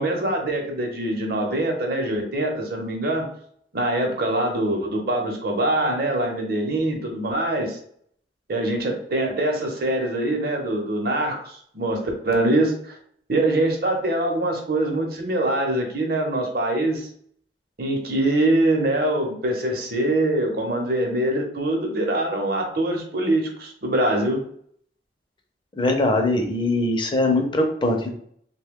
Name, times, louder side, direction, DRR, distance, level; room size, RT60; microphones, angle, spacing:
voice 1, 0.0-3.3 3.7-7.8 8.5-13.0 13.3-17.1 17.8-24.4, right 1 dB, 60° right, 2 dB, 0.8 m, -23 dB
voice 2, 25.8-28.1, left 2 dB, 30° left, 3 dB, 0.6 m, -21 dB
3.2 x 2.2 x 3.5 m, 0.63 s
head